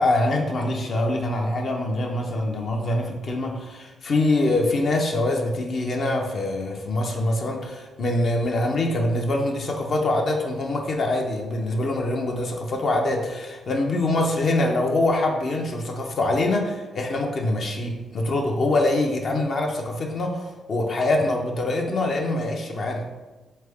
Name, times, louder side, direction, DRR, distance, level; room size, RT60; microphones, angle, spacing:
voice 1, 0.0-23.1, left 2 dB, 60° left, 1 dB, 0.5 m, -24 dB
3.3 x 3.2 x 3.5 m, 1.2 s
cardioid pair, 75°, 0 cm